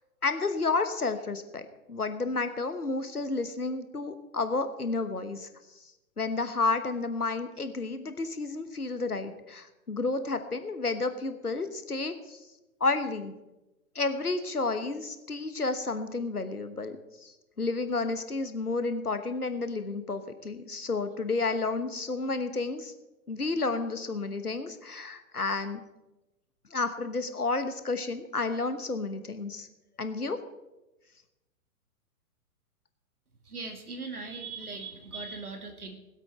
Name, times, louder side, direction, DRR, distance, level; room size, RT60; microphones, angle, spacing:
voice 1, 0.2-1.6 1.9-5.5 6.2-12.4 12.8-13.3 13.9-22.9 23.3-25.8 26.7-29.7 30.0-30.4, left 3 dB, 90° left, 10 dB, 1.3 m, -31 dB
voice 2, 33.4-35.9, right 4 dB, 80° right, 5 dB, 2.0 m, -39 dB
20.0 x 8.2 x 4.4 m, 1.0 s
figure-of-eight pair, 110°, 44 cm